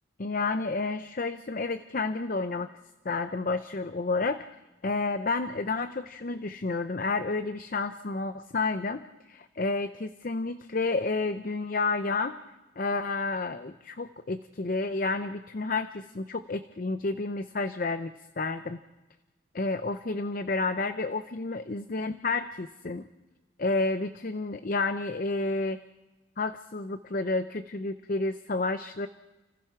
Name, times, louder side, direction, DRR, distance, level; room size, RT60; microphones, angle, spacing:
voice 1, 0.2-2.7 3.0-12.4 12.8-18.1 18.4-18.8 19.5-23.1 23.6-25.8 26.4-29.1, left 3 dB, 45° left, 10 dB, 0.6 m, -30 dB
30.0 x 15.5 x 5.9 m, 1.1 s
head